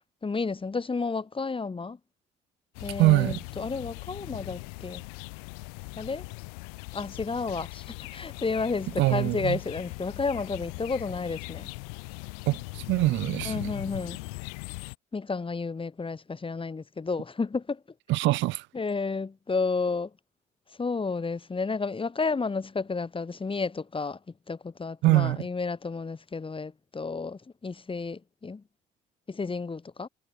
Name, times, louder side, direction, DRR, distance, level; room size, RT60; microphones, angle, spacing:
voice 1, 0.2-2.0 2.8-5.0 6.0-6.2 6.9-11.7 13.4-14.2 15.1-17.8 18.7-20.1 20.8-24.2 24.5-28.6 29.3-30.1, left 4 dB, 25° left, 2.2 m, -31 dB
sound 1, 2.7-15.0, left 37 dB, 85° left, 3.3 m, -40 dB
voice 2, 3.0-3.4 9.0-9.6 12.5-13.7 18.1-18.7 25.0-25.4, right 19 dB, 75° right, 0.9 m, -23 dB
hypercardioid pair, 60°, 19 cm